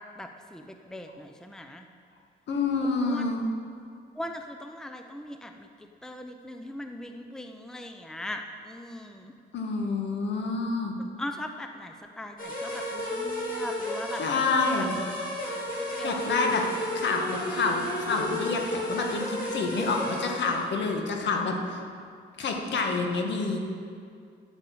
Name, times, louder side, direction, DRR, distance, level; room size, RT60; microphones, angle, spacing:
voice 1, 0.2-1.9 3.1-3.3 4.1-5.7 6.0-9.3 11.2-14.9 15.8-16.5, left 1 dB, 5° left, 5 dB, 0.7 m, -40 dB
voice 2, 2.5-3.5 9.5-11.0 14.2-15.0 16.0-16.6 16.9-21.8 22.4-23.6, left 3 dB, 65° left, 2 dB, 1.8 m, -28 dB
sound 1, 12.4-20.7, left 1 dB, 45° left, 3.3 m, -33 dB
10.5 x 7.1 x 8.5 m, 2.3 s
cardioid pair, 90°, 20 cm